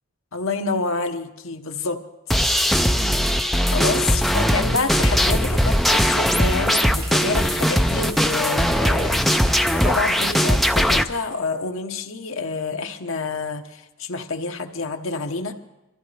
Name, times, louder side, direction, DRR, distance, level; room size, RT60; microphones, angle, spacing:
voice 1, 0.3-2.0 2.3-2.4 3.7-15.5, left 4 dB, 65° left, 6 dB, 1.0 m, -28 dB
sound 1, 2.3-11.0, equal, ahead, 0.4 m, -20 dB
sound 2, 5.5-10.8, right 3 dB, 60° right, 2.3 m, -42 dB
23.5 x 14.0 x 3.3 m, 0.99 s
head